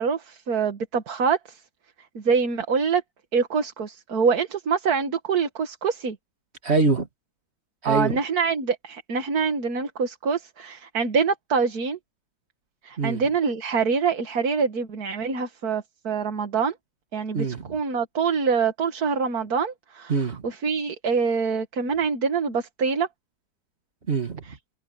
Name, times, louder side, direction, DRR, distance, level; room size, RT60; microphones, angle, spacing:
voice 1, 0.0-1.6 2.2-3.0 3.3-6.2 7.8-12.0 12.8-16.7 17.1-17.5 17.7-20.1 20.4-23.1, right 5 dB, 70° right, 2.1 m, -25 dB
voice 2, 6.6-7.1 7.8-8.2 13.0-13.3 17.3-17.7 20.1-20.5 24.1-24.6, right 3 dB, 40° right, 2.4 m, -24 dB
omnidirectional pair, 1.7 m